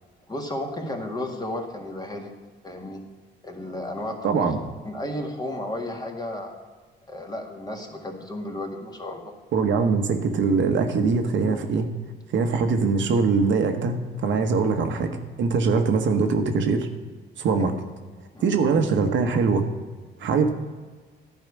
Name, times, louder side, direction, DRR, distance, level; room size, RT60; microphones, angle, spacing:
voice 1, 0.3-2.3 2.6-3.0 3.4-4.5 4.9-6.6 7.1-9.3 17.6-17.8 18.3-18.5, left 1 dB, 20° left, 2 dB, 1.8 m, -33 dB
voice 2, 4.2-4.6 9.5-11.9 12.3-15.1 15.4-16.9 17.4-17.7 18.4-19.7 20.2-20.5, right 4 dB, 70° right, 5 dB, 1.1 m, -22 dB
11.0 x 4.9 x 8.3 m, 1.4 s
cardioid pair, 90°, 20 cm